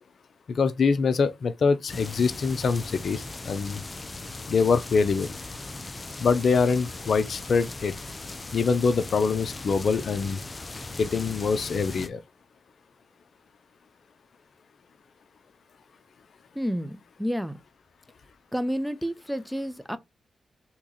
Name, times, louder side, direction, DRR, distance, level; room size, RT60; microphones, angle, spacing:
voice 1, 0.5-3.8 4.5-5.4 6.2-7.9 8.5-10.4 11.0-12.2, left 5 dB, 65° left, 0.6 m, -24 dB
sound 1, 1.9-12.1, left 2 dB, 35° left, 0.7 m, -39 dB
voice 2, 16.5-17.6 18.5-20.0, equal, ahead, 0.6 m, -30 dB
3.6 x 3.0 x 4.0 m
cardioid pair, 55°, 0 cm